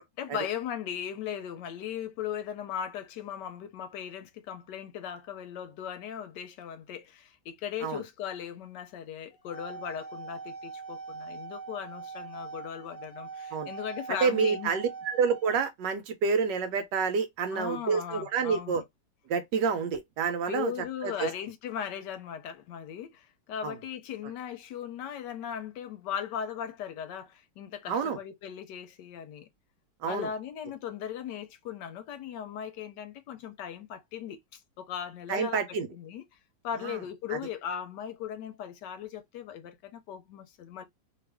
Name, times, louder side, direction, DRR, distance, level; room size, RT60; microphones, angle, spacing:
voice 1, 0.2-14.7 17.5-18.8 20.5-29.5 30.0-36.2 36.6-40.8, left 9 dB, 75° left, 1.2 m, -38 dB
sound 1, 9.3-15.5, right 5 dB, 45° left, 0.9 m, -43 dB
voice 2, 14.2-18.8 19.3-20.7 21.0-21.3 23.6-23.7 27.9-28.2 30.0-30.3 35.3-35.9 36.8-37.0, right 5 dB, 75° right, 1.3 m, -28 dB
3.0 x 2.5 x 3.3 m
omnidirectional pair, 2.0 m